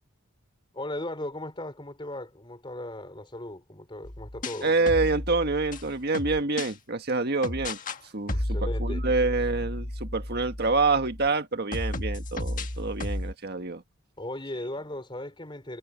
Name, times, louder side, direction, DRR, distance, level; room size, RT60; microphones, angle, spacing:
voice 1, 0.7-4.7 8.3-9.0 14.2-15.8, left 1 dB, 25° left, 4.0 m, -37 dB
sound 1, 4.0-6.7 7.4-8.0 8.3-11.3 11.7-13.3, left 1 dB, 40° left, 1.7 m, -33 dB
voice 2, 4.6-7.8 8.1-13.8, right 3 dB, 50° right, 1.7 m, -27 dB
head